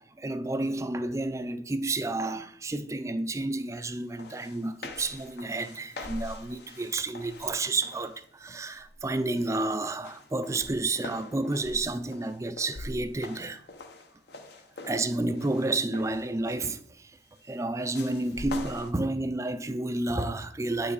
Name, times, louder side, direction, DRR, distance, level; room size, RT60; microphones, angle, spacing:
voice 1, 0.0-13.6 14.8-17.1 17.5-20.9, right 2 dB, 15° right, 0.4 m, -30 dB
sound 1, 3.8-3.9 4.2-8.2 8.7-9.0 9.4-16.8 17.9-18.9, left 2 dB, 60° left, 0.8 m, -43 dB
8.6 x 5.8 x 4.0 m
head